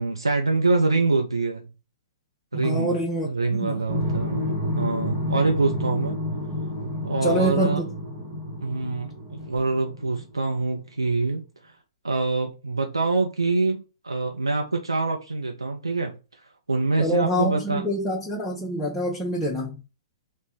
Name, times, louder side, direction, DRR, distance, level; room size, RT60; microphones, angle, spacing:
voice 1, 0.0-1.7 2.5-4.5 4.7-6.2 7.0-7.8 8.6-11.7 12.0-16.1 16.7-17.8, right 3 dB, 80° right, 0.5 m, -25 dB
voice 2, 2.5-3.8 7.2-7.9 17.0-19.8, equal, 10° left, 0.6 m, -26 dB
sound 1, 3.9-10.4, left 1 dB, 10° right, 1.5 m, -30 dB
3.3 x 2.1 x 4.2 m
figure-of-eight pair, 115°, 2 cm